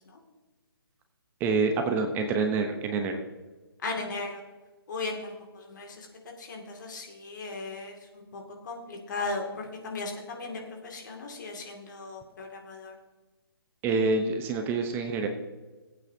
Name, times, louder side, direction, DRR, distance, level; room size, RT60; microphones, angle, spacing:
voice 1, 1.4-3.2 13.8-15.3, right 4 dB, 15° right, 5 dB, 0.8 m, -27 dB
voice 2, 3.8-4.4 4.9-6.1 6.4-12.9, left 3 dB, 50° left, 1 dB, 2.3 m, -37 dB
20.0 x 8.5 x 2.8 m, 1.2 s
figure-of-eight pair, 140°, 13 cm